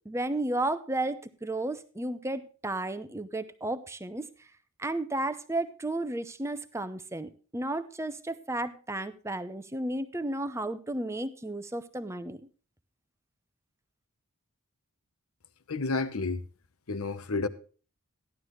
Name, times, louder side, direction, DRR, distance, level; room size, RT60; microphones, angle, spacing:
voice 1, 0.1-4.3 4.8-12.4, right 2 dB, 10° right, 0.7 m, -33 dB
voice 2, 15.7-16.4 16.9-17.5, left 3 dB, 75° left, 0.9 m, -30 dB
15.0 x 11.5 x 3.1 m
head